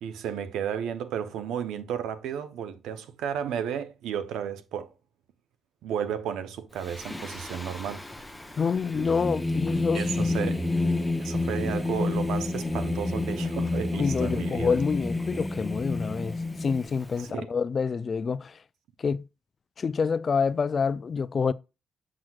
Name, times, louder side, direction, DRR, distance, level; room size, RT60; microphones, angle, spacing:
voice 1, 0.0-4.9 5.8-8.0 9.9-10.6 11.2-14.8 17.2-17.5, right 8 dB, 85° right, 0.7 m, -33 dB
Singing, 6.8-17.2, left 2 dB, 10° left, 0.7 m, -29 dB
voice 2, 8.6-10.0 14.0-18.6 19.0-19.2 19.8-21.5, left 5 dB, 40° left, 0.3 m, -27 dB
7.4 x 6.1 x 2.3 m
cardioid pair, 90°, 0 cm